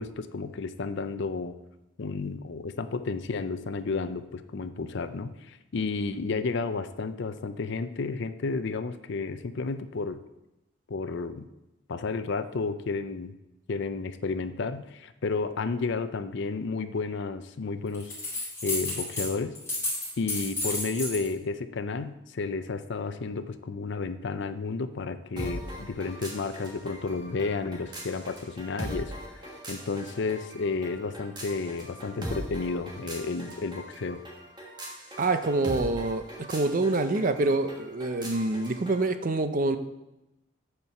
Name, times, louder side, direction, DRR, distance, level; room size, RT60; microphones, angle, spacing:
voice 1, 0.0-1.6 2.0-10.2 10.9-11.5 11.9-13.3 13.7-18.2 18.6-19.6 20.2-34.2, left 4 dB, 55° left, 11 dB, 0.5 m, -32 dB
sound 1, 17.9-19.3 19.5-21.3, left 2 dB, 10° left, 2.6 m, -32 dB
sound 2, 25.4-39.1, equal, 20° right, 1.5 m, -41 dB
voice 2, 35.2-39.8, right 2 dB, 40° right, 10 dB, 0.5 m, -26 dB
8.4 x 4.6 x 5.8 m, 0.94 s
head